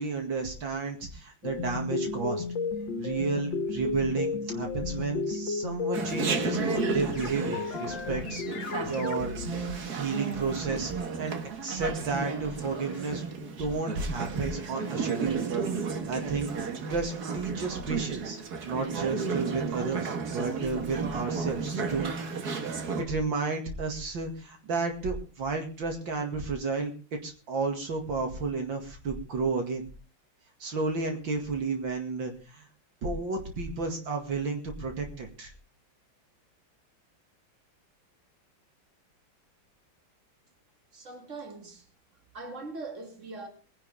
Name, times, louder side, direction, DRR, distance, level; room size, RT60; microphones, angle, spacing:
voice 1, 0.0-2.4 3.0-9.3 9.9-11.3 11.6-13.2 13.6-15.4 16.1-18.4 18.6-22.1 22.6-26.9 27.2-29.9 30.6-32.6 33.0-35.5, right 4 dB, 75° right, 2.8 m, -32 dB
sound 1, 1.4-9.8, left 4 dB, 70° left, 2.0 m, -33 dB
Chatter, 5.9-23.0, right 5 dB, 55° right, 2.0 m, -33 dB
sound 2, 11.3-16.1, right 1 dB, 20° right, 5.2 m, -53 dB
voice 2, 40.9-41.9 42.3-43.5, right 3 dB, 40° right, 2.9 m, -41 dB
22.0 x 10.5 x 3.5 m
omnidirectional pair, 2.1 m